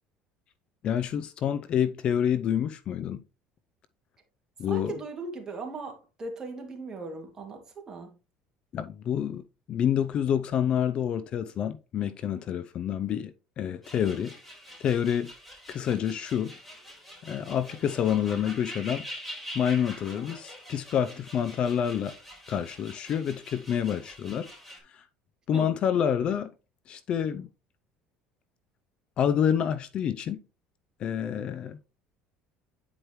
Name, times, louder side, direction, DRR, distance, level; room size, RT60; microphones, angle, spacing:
voice 1, 0.8-3.2 4.6-4.9 8.7-9.4 9.7-14.3 14.8-15.3 15.7-16.5 17.2-19.1 19.5-22.1 22.5-24.5 24.9-25.0 25.5-26.5 26.9-27.5 29.2-30.4 31.0-31.8, left 9 dB, 45° left, 0.5 m, -28 dB
voice 2, 4.7-8.2 25.5-25.7, right 3 dB, 25° right, 2.3 m, -38 dB
sound 1, 13.8-24.8, equal, 10° left, 4.2 m, -45 dB
9.4 x 4.8 x 3.1 m
supercardioid pair, 110°, 2 cm